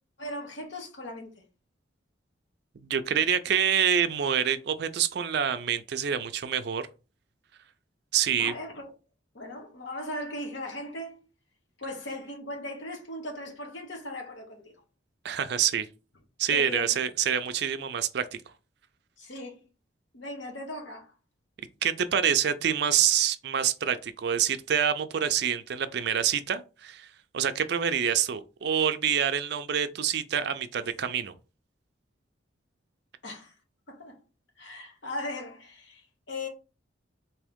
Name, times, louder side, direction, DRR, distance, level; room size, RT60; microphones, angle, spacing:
voice 1, 0.2-1.3 8.4-8.9 9.3-11.2 11.8-14.7 16.5-16.9 19.2-19.7 20.1-21.1 33.2-33.5 33.9-34.2 34.6-36.5, left 1 dB, 70° left, 1.1 m, -38 dB
voice 2, 2.8-6.9 8.1-8.5 15.2-15.9 16.4-18.2 21.8-27.1 27.3-31.3, right 8 dB, 55° right, 0.4 m, -26 dB
3.5 x 2.8 x 3.5 m
head